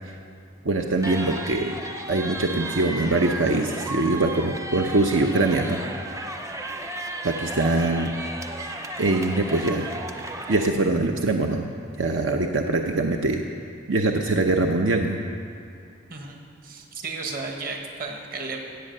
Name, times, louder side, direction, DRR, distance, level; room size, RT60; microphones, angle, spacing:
voice 1, 0.6-1.8 2.1-5.8 7.2-8.2 9.0-9.9 10.5-11.7 12.0-13.4 13.9-15.2, right 2 dB, 80° right, 3 dB, 0.8 m, -23 dB
sound 1, 1.0-10.7, right 1 dB, 15° right, 0.6 m, -34 dB
voice 2, 16.1-18.6, right 3 dB, 45° right, 2 dB, 1.5 m, -34 dB
16.5 x 8.2 x 6.6 m, 2.5 s
head